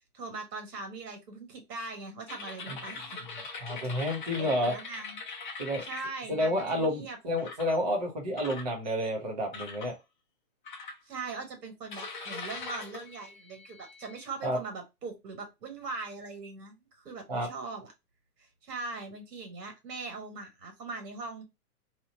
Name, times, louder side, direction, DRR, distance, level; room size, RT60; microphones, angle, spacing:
voice 1, 0.1-3.2 4.4-5.2 5.9-7.5 11.0-17.9 18.4-21.4, right 3 dB, 90° right, 1.5 m, -41 dB
sound 1, 2.3-6.9 7.4-7.8 8.4-9.1 9.5-9.9 10.7-11.4 11.9-14.2, left 4 dB, 35° left, 0.5 m, -42 dB
voice 2, 3.6-4.7 5.6-5.8 6.3-9.9 14.4-14.6 17.3-17.5, equal, 30° right, 0.4 m, -30 dB
2.8 x 2.0 x 3.7 m
hypercardioid pair, 165°, 48 cm